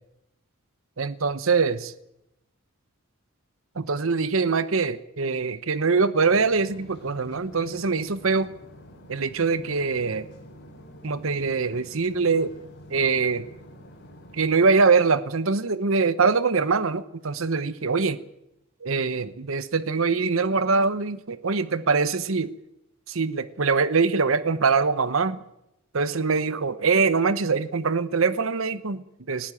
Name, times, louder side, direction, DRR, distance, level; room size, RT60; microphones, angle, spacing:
voice 1, 1.0-1.9 3.8-8.5 9.1-10.3 11.0-12.5 12.9-13.5 14.3-18.2 18.8-22.5 23.1-25.4 25.9-29.5, right 4 dB, 70° right, 15 dB, 0.9 m, -23 dB
sound 1, 6.3-14.7, equal, 50° left, 4.8 m, -47 dB
19.5 x 15.5 x 8.9 m, 0.85 s
head